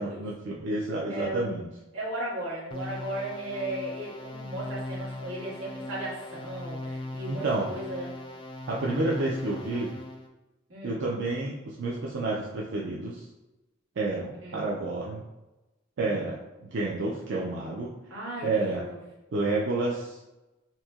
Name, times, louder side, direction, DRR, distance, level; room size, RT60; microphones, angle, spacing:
voice 1, 0.0-1.7 7.2-7.7 8.7-9.9 10.8-13.3 14.0-15.3 16.0-17.9 18.4-18.9 19.3-20.2, right 2 dB, 60° right, -3 dB, 0.4 m, -30 dB
voice 2, 1.1-1.5 1.9-8.2 10.7-11.0 14.4-14.6 16.0-16.3 18.1-19.0, right 1 dB, 90° right, -6 dB, 1.4 m, -36 dB
sound 1, 2.7-10.3, left 1 dB, 25° left, 0.4 m, -39 dB
4.2 x 2.8 x 2.3 m, 1.0 s
head